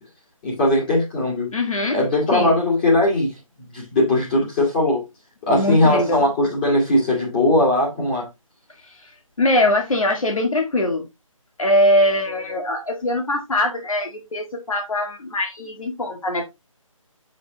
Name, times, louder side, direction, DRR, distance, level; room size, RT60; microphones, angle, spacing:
voice 1, 0.4-1.5 1.9-3.3 3.7-5.1 5.4-8.3, left 1 dB, 20° left, 2.0 m, -19 dB
voice 2, 1.5-2.0 2.3-2.5 5.5-6.2 8.8-9.1 9.4-11.1 11.6-16.5, left 1 dB, 75° left, 2.1 m, -22 dB
7.0 x 6.3 x 2.9 m
figure-of-eight pair, 165°, 18 cm